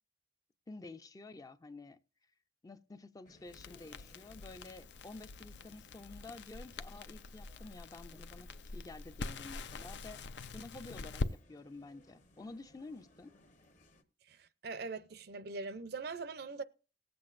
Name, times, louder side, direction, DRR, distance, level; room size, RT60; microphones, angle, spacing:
voice 1, 0.7-2.0 2.6-10.2 10.5-13.3, left 2 dB, 20° left, 0.4 m, -50 dB
sound 1, 3.2-14.0, left 2 dB, 45° left, 1.1 m, -65 dB
Crackle, 3.5-11.3, left 3 dB, 75° left, 0.5 m, -44 dB
voice 2, 14.3-16.6, right 4 dB, 65° right, 0.6 m, -42 dB
19.0 x 7.7 x 2.5 m
head